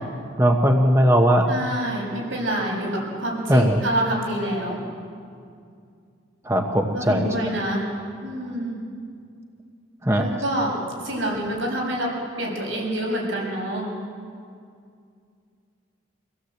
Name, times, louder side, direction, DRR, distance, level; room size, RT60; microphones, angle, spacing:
voice 1, 0.4-1.5 3.5-3.8 6.4-7.3 10.0-10.2, equal, 15° right, 2 dB, 1.0 m, -18 dB
voice 2, 1.5-4.8 6.9-7.8 8.2-8.8 10.2-10.7 11.0-12.1 12.4-13.9, right 1 dB, 80° right, -2 dB, 6.9 m, -27 dB
26.0 x 16.0 x 8.1 m, 2.3 s
head